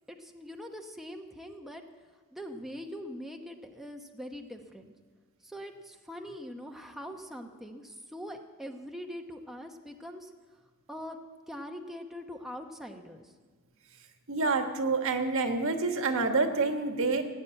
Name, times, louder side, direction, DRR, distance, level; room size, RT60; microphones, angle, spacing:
voice 1, 0.1-1.8 2.3-4.9 5.4-10.3 10.9-11.2 11.5-13.3, equal, ahead, 2 dB, 0.9 m, -42 dB
voice 2, 14.3-17.2, right 3 dB, 65° right, 5 dB, 1.4 m, -27 dB
17.0 x 8.4 x 8.9 m, 1.4 s
head